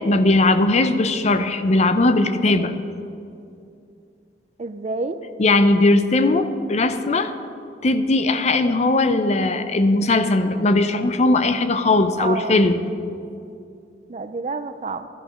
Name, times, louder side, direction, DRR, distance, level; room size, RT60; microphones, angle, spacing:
voice 1, 0.0-2.7 5.4-7.3 7.8-12.8, left 2 dB, 40° left, 10 dB, 0.6 m, -19 dB
voice 2, 2.5-2.8 4.6-5.2 12.1-12.6 14.1-15.1, right 3 dB, 40° right, 11 dB, 0.5 m, -29 dB
12.5 x 11.0 x 5.0 m, 2.6 s
head